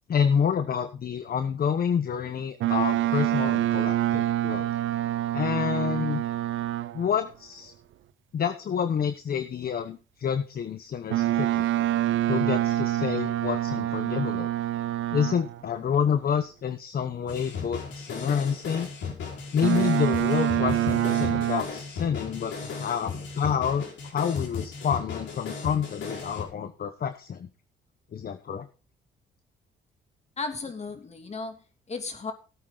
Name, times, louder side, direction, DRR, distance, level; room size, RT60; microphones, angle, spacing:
voice 1, 0.1-4.7 5.3-6.2 6.9-7.7 8.3-11.7 12.3-14.5 15.1-18.9 19.5-27.5 28.1-28.7, left 7 dB, 50° left, 10 dB, 1.1 m, -28 dB
Boat Water vehicle, 2.6-7.1 11.1-15.6 19.6-21.6, right 14 dB, 75° right, 0.7 m, -26 dB
sound 1, 17.3-26.4, left 5 dB, 70° left, 5.1 m, -36 dB
voice 2, 30.4-32.3, left 4 dB, 35° left, 6 dB, 3.0 m, -35 dB
17.0 x 8.7 x 4.0 m, 0.35 s
cardioid pair, 90°, 20 cm